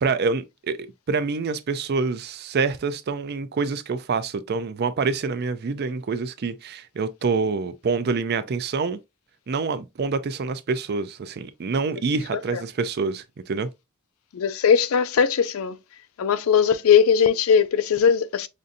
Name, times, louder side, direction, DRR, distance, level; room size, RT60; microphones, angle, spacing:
voice 1, 0.0-9.0 9.5-13.7, right 4 dB, 50° right, 0.4 m, -26 dB
voice 2, 14.3-15.8 16.2-18.5, left 7 dB, 80° left, 0.4 m, -19 dB
5.2 x 2.6 x 2.6 m
head